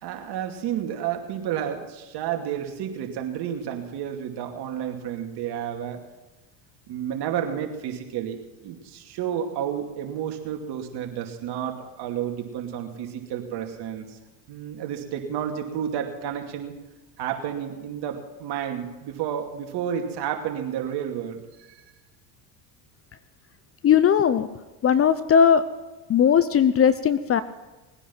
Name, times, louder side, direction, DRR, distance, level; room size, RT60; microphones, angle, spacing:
voice 1, 0.0-6.0 6.9-14.2 14.5-16.7 17.2-21.4 21.7-21.8, right 9 dB, 55° right, 3 dB, 2.6 m, -31 dB
voice 2, 23.8-24.5 24.8-25.6 26.1-27.4, left 8 dB, 30° left, 14 dB, 0.7 m, -18 dB
19.5 x 9.9 x 6.0 m, 1.1 s
hypercardioid pair, 85°, 49 cm